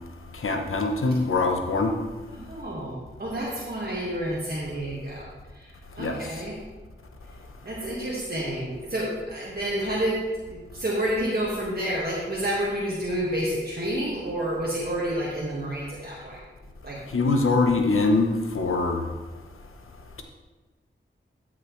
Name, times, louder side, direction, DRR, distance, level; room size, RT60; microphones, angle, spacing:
voice 1, 0.3-1.9 6.0-6.3 17.1-19.0, left 3 dB, 90° left, 4 dB, 0.9 m, -23 dB
voice 2, 2.3-5.3 5.5-5.7 6.0-6.5 7.6-16.4 16.8-17.0, right 1 dB, 50° right, -5 dB, 1.7 m, -29 dB
13.0 x 6.1 x 3.2 m, 1.3 s
wide cardioid pair, 55°, 21 cm